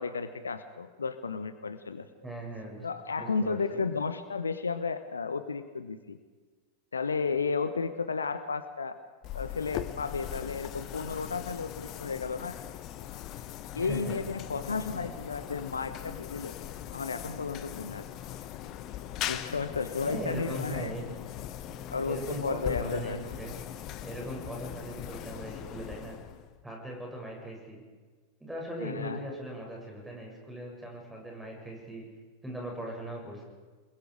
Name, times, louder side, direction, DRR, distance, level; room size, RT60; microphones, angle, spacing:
voice 1, 0.0-2.1 2.8-6.2 6.9-9.0 9.3-12.6 13.7-16.5 16.9-18.0 19.3-20.9 21.9-23.2 28.8-29.2, left 5 dB, 75° left, 11 dB, 1.2 m, -33 dB
voice 2, 2.2-2.9 3.2-3.8 13.8-14.2 14.9-15.2 19.4-19.6 20.0-21.0 21.7-23.5 24.0-26.2 26.6-27.8 28.4-32.0 32.4-33.4, right 1 dB, 5° right, -1 dB, 7.5 m, -39 dB
sound 1, 9.2-26.6, left 11 dB, 35° left, 1.3 m, -40 dB
28.0 x 21.5 x 5.2 m, 1.4 s
figure-of-eight pair, 90°, 0 cm